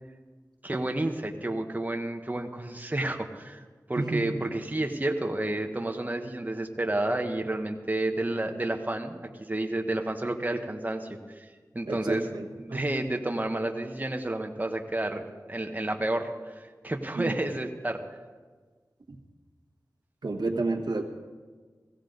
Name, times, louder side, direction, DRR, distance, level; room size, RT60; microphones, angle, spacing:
voice 1, 0.6-3.6 3.9-11.5 11.7-12.3 12.6-18.0, right 1 dB, 25° right, 4 dB, 1.1 m, -30 dB
voice 2, 11.9-12.4 12.7-12.8 17.2-17.3 20.2-21.0, right 3 dB, 90° right, 3 dB, 1.3 m, -30 dB
16.5 x 16.5 x 3.9 m, 1.4 s
wide cardioid pair, 70°, 7 cm